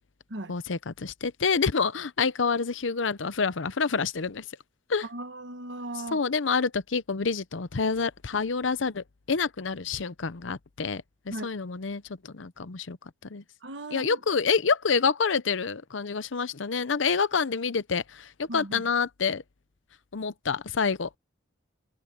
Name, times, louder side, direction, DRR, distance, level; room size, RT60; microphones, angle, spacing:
voice 1, 0.5-4.4 4.9-5.1 6.1-13.0 13.3-13.4 13.9-19.4 20.1-21.2, left 5 dB, 85° left, 0.8 m, -28 dB
voice 2, 5.1-6.2 11.3-11.5 13.6-14.2 18.5-18.8, right 1 dB, 75° right, 1.3 m, -37 dB
head